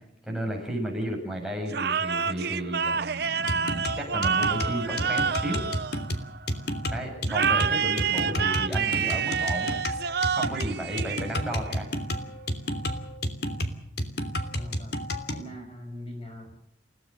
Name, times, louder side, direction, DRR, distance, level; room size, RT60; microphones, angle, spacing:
voice 1, 0.2-5.6 6.9-9.7 10.3-11.9, right 1 dB, 5° right, -1 dB, 7.9 m, -33 dB
sound 1, 1.7-6.5 7.3-11.7, right 6 dB, 60° right, 0.8 m, -28 dB
sound 2, 3.5-15.5, equal, 60° left, 3.0 m, -31 dB
voice 2, 14.5-15.0 15.3-16.6, left 1 dB, 30° left, 3 dB, 6.2 m, -41 dB
29.0 x 17.5 x 6.5 m, 0.72 s
head